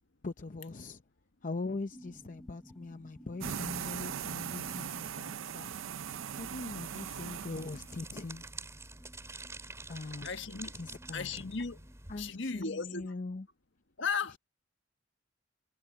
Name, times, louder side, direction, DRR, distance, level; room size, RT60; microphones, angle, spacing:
voice 1, 0.2-1.0 1.4-5.7 6.4-8.4 9.9-10.3 10.7-11.4 12.1-13.5, left 3 dB, 40° left, 0.7 m, -41 dB
sound 1, 1.9-12.9, equal, 5° left, 4.0 m, -57 dB
sound 2, 3.4-8.2, right 8 dB, 80° right, 0.5 m, -40 dB
sound 3, 6.4-12.3, right 3 dB, 15° right, 3.4 m, -48 dB
voice 2, 10.2-10.7 11.1-11.8 12.2-13.1 14.0-14.4, left 5 dB, 65° left, 1.5 m, -35 dB
head